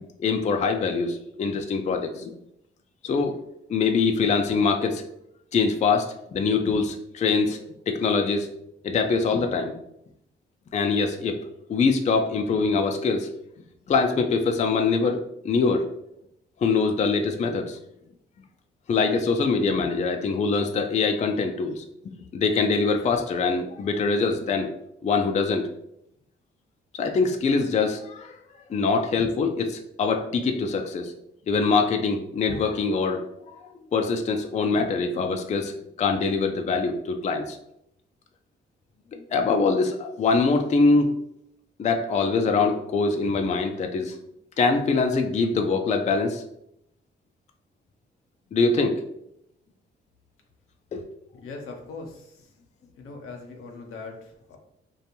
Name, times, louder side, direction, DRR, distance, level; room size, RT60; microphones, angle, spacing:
voice 1, 0.2-2.4 3.0-3.4 3.7-5.0 5.5-6.1 6.3-7.6 7.9-8.5 8.8-9.7 10.7-11.4 11.7-13.3 13.9-15.9 16.6-17.8 18.9-21.8 22.3-24.7 25.0-25.7 26.9-28.4 28.7-31.1 31.5-33.5 33.9-37.6 39.3-41.1 41.8-44.1 44.6-46.4 48.5-49.0 50.9-51.0, left 4 dB, 35° left, 4 dB, 0.4 m, -23 dB
voice 2, 51.4-52.5 53.0-54.6, left 3 dB, 80° left, 2 dB, 0.6 m, -40 dB
2.5 x 2.2 x 2.8 m, 0.77 s
supercardioid pair, 55°, 21 cm